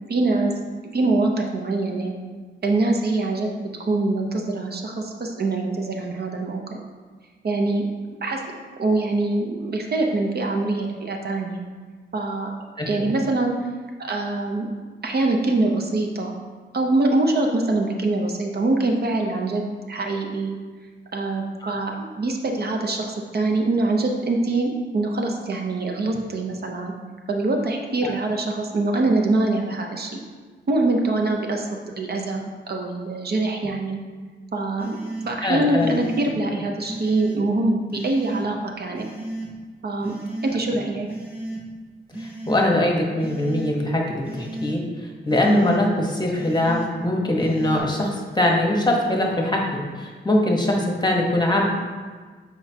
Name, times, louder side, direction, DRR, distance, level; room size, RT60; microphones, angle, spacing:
voice 1, 0.1-0.5 0.9-2.1 2.6-6.8 7.4-7.8 8.2-8.4 8.8-11.6 12.1-12.5 12.9-13.5 14.0-14.7 15.0-16.3 16.7-20.6 21.1-26.9 27.3-30.2 30.7-34.0 34.5-39.1 39.8-40.1 40.4-41.1, right 2 dB, 55° right, 2 dB, 0.7 m, -24 dB
voice 2, 12.8-13.1 28.0-28.1 35.4-36.0 42.2-44.8 45.2-51.6, left 1 dB, 20° left, -1 dB, 1.1 m, -22 dB
sound 1, 34.8-35.3 35.8-36.3 36.9-37.4 37.9-38.4 38.9-39.5 40.0-40.6 41.1-41.6 42.1-42.6 43.2-43.7 44.2-44.8 45.3-45.8 46.4-46.9 47.4-47.8, right 2 dB, 10° right, 1.4 m, -34 dB
7.8 x 4.5 x 2.8 m, 1.5 s
wide cardioid pair, 90°, 20 cm